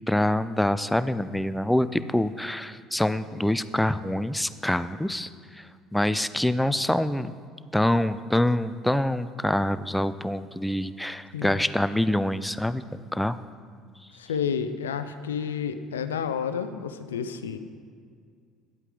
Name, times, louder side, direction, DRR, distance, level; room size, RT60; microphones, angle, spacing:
voice 1, 0.1-5.3 5.6-5.7 5.9-7.3 7.7-13.4, left 1 dB, 5° left, 13 dB, 0.4 m, -25 dB
voice 2, 14.1-17.6, left 7 dB, 90° left, 11 dB, 0.4 m, -30 dB
10.5 x 8.1 x 3.8 m, 2.1 s
hypercardioid pair, 65°, 0 cm